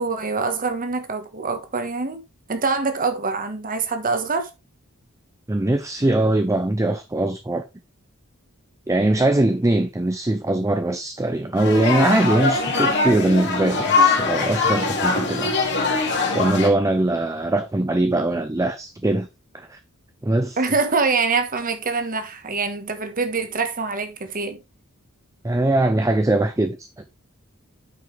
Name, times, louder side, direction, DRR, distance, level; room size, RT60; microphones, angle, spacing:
voice 1, 0.0-2.2 2.5-4.5 20.6-24.6, right 4 dB, 40° right, 1.4 m, -24 dB
voice 2, 5.5-7.6 8.9-15.7 16.3-19.3 19.5-19.8 20.2-20.6 25.4-27.0, right 1 dB, 15° right, 0.6 m, -21 dB
sound 1, 11.5-16.7, left 4 dB, 55° left, 2.9 m, -22 dB
9.1 x 5.4 x 3.3 m
head